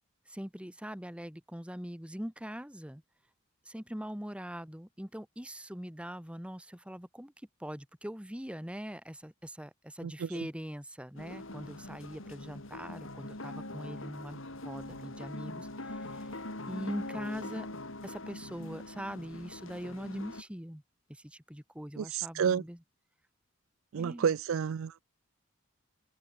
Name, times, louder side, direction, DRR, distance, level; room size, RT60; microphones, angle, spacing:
voice 1, 0.3-3.0 3.7-7.3 7.6-16.3 16.7-17.7 18.0-20.8 21.1-22.8 23.9-24.3, equal, 5° right, 1.6 m, -42 dB
sound 1, 11.2-20.4, left 2 dB, 65° left, 4.2 m, -43 dB
voice 2, 22.0-22.6 23.9-25.0, right 7 dB, 65° right, 0.4 m, -30 dB
head